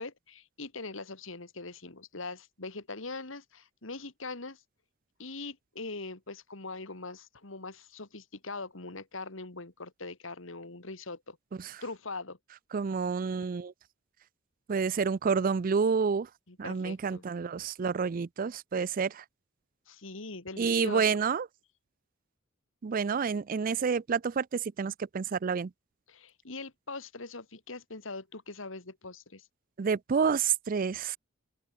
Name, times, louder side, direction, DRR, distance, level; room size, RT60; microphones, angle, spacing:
voice 1, 0.0-4.6 5.2-11.4 11.8-12.4 16.5-17.3 19.9-21.2 26.1-29.5, left 3 dB, 75° left, 2.4 m, -42 dB
voice 2, 12.7-13.7 14.7-16.3 16.6-19.2 20.6-21.5 22.8-25.7 29.8-31.2, right 5 dB, 45° right, 0.4 m, -29 dB
open air
head